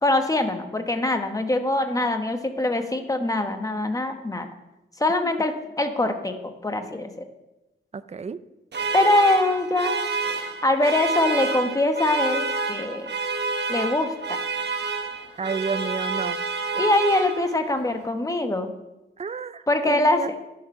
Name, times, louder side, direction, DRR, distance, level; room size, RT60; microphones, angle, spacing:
voice 1, 0.0-4.5 5.0-7.1 8.9-10.0 10.6-13.1 13.7-14.4 16.7-18.7 19.7-20.4, left 2 dB, 15° left, 6 dB, 1.3 m, -23 dB
voice 2, 7.9-8.4 15.4-16.4 19.2-20.4, right 5 dB, 30° right, 14 dB, 0.5 m, -31 dB
sound 1, 8.7-17.7, right 4 dB, 55° right, 1.2 m, -29 dB
12.0 x 7.2 x 5.5 m, 0.97 s
cardioid pair, 75°, 21 cm